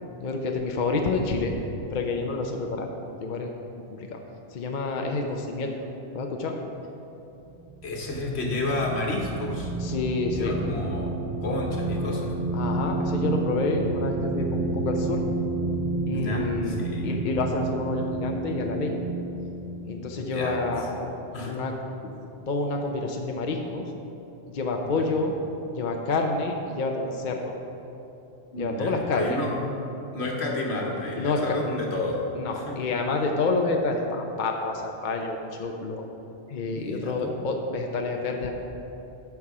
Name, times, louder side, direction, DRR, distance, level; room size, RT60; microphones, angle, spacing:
voice 1, 0.2-1.5 1.9-2.9 3.2-3.5 3.9-4.2 4.5-5.7 6.1-6.6 9.8-10.5 12.5-15.2 16.1-19.0 19.8-21.1 21.5-21.7 22.5-23.9 24.5-25.3 25.7-27.5 28.6-29.4 31.2-31.8 32.3-36.0 36.5-38.5, left 3 dB, 50° left, 2 dB, 0.7 m, -28 dB
sound 1, 7.5-21.2, right 3 dB, 80° right, 1.1 m, -30 dB
voice 2, 7.8-9.7 10.3-12.3 16.1-17.1 20.2-20.6 21.3-21.5 24.8-25.1 28.5-29.6 30.1-32.2 32.5-32.7 36.6-37.3, left 2 dB, 70° left, 0 dB, 1.5 m, -31 dB
12.5 x 4.7 x 4.9 m, 3.0 s
omnidirectional pair, 1.1 m